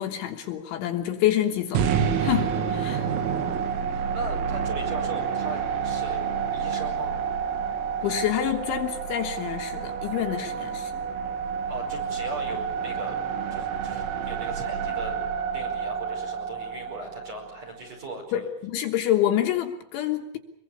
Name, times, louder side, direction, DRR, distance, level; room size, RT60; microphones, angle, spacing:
voice 1, 0.0-1.9 2.2-3.1 8.0-10.9 18.3-20.4, left 12 dB, 75° left, 4 dB, 3.4 m, -27 dB
sound 1, 1.8-17.9, right 7 dB, 80° right, 4.5 m, -29 dB
voice 2, 2.8-7.2 11.7-13.2 13.5-15.2 15.5-18.5, right 1 dB, 30° right, 4 dB, 5.8 m, -40 dB
25.0 x 22.5 x 7.1 m, 0.72 s
omnidirectional pair, 6.0 m